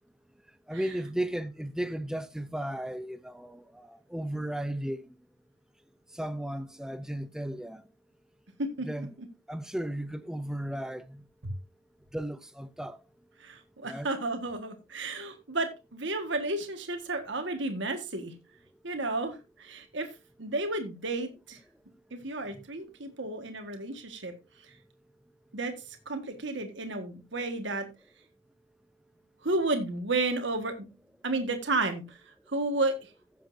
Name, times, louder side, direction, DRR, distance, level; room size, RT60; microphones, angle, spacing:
voice 1, 0.7-5.1 6.1-7.8 8.8-9.1 9.5-11.2 12.1-13.0 13.8-14.1 22.5-22.6, right 1 dB, 5° right, 0.6 m, -35 dB
voice 2, 13.4-18.3 18.8-20.1 20.4-21.6 22.1-24.3 25.5-25.7 26.0-27.9 29.4-30.7 31.2-32.2 32.5-32.9, right 2 dB, 60° right, 1.6 m, -32 dB
15.0 x 7.2 x 2.7 m
head